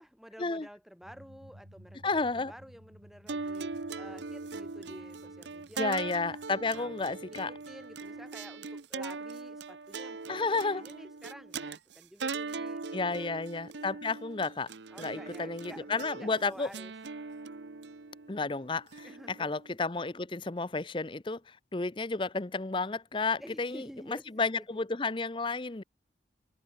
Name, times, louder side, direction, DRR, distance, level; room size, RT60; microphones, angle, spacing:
voice 1, 0.0-6.4 6.7-6.9 7.3-13.3 14.9-16.9 19.0-19.5 23.4-24.3 24.5-24.8, equal, ahead, 4.9 m, -50 dB
sound 1, 1.0-8.3, equal, 55° right, 4.1 m, -58 dB
voice 2, 2.0-2.5 5.8-7.5 10.3-10.8 12.9-14.7 15.0-16.7 18.3-25.8, left 3 dB, 30° left, 0.7 m, -32 dB
sound 2, 3.3-19.7, right 4 dB, 80° right, 0.9 m, -40 dB
head